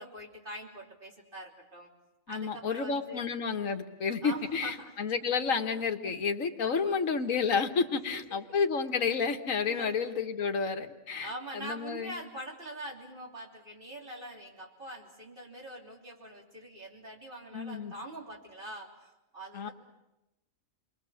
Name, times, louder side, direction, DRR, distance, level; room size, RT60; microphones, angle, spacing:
voice 1, 0.0-1.9 2.3-3.2 4.2-4.9 6.6-7.0 7.9-8.6 9.7-9.9 11.2-19.7, right 1 dB, 40° right, 0 dB, 3.6 m, -44 dB
voice 2, 2.3-12.2 17.5-17.9 19.5-19.7, left 5 dB, 75° left, 6 dB, 1.8 m, -31 dB
29.0 x 22.0 x 7.1 m, 0.93 s
omnidirectional pair, 1.4 m